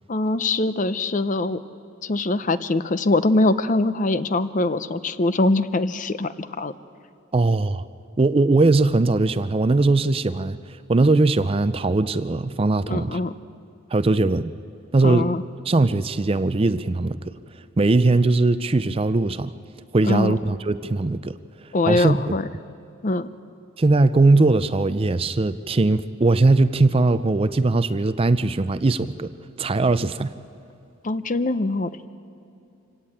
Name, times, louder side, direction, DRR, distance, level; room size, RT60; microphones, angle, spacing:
voice 1, 0.1-1.6 2.0-6.7 12.9-13.3 15.0-15.4 20.1-20.4 21.7-22.5 23.0-23.3 31.0-32.1, left 2 dB, 40° left, 13 dB, 0.6 m, -23 dB
voice 2, 7.3-7.9 8.2-10.6 10.9-13.2 13.9-14.5 14.9-15.3 15.7-17.4 17.8-19.5 19.9-21.3 21.9-22.2 23.8-29.3 29.6-30.3, right 2 dB, 25° right, 13 dB, 0.4 m, -20 dB
25.5 x 17.0 x 8.8 m, 2.7 s
head